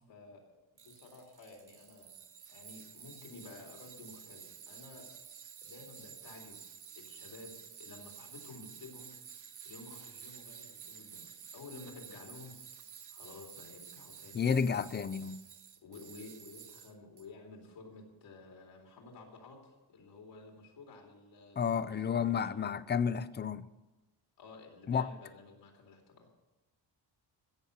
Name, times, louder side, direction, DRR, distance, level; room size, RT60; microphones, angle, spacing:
voice 1, 0.1-0.4 0.8-2.1 2.5-5.1 5.6-6.6 7.0-9.1 9.6-12.5 13.1-14.8 15.8-21.6 21.8-22.5 24.4-26.3, left 3 dB, 75° left, 3.9 m, -52 dB
Tools, 0.8-17.2, right 7 dB, 45° right, 1.1 m, -51 dB
voice 2, 14.3-15.4 21.6-23.7 24.9-25.1, left 6 dB, 25° left, 0.5 m, -31 dB
16.5 x 7.0 x 8.1 m
wide cardioid pair, 140°, 44 cm